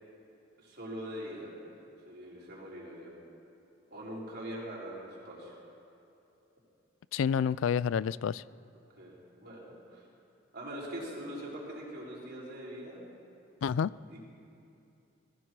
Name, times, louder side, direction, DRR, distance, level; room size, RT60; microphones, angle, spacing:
voice 1, 0.6-1.5 2.0-3.1 3.9-5.5 9.0-10.0 10.5-13.0 14.1-14.2, equal, 60° right, -5 dB, 4.8 m, -42 dB
voice 2, 7.1-8.4 13.6-13.9, left 7 dB, 80° left, 19 dB, 0.3 m, -29 dB
20.5 x 15.0 x 4.7 m, 2.8 s
head